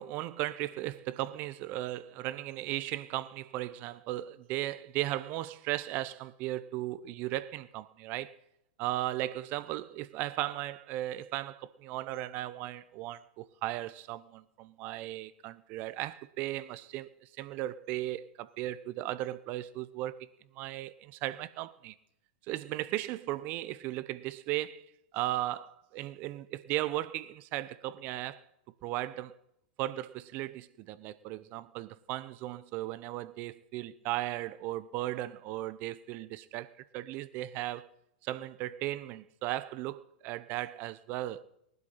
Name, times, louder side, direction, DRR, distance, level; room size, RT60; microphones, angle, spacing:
voice 1, 0.0-8.3 8.8-17.1 17.4-20.3 20.5-21.9 22.5-24.9 25.1-28.4 28.8-29.4 29.8-37.9 38.2-41.4, right 15 dB, 40° right, 0.8 m, -36 dB
19.0 x 12.0 x 4.3 m
hypercardioid pair, 105°, 4 cm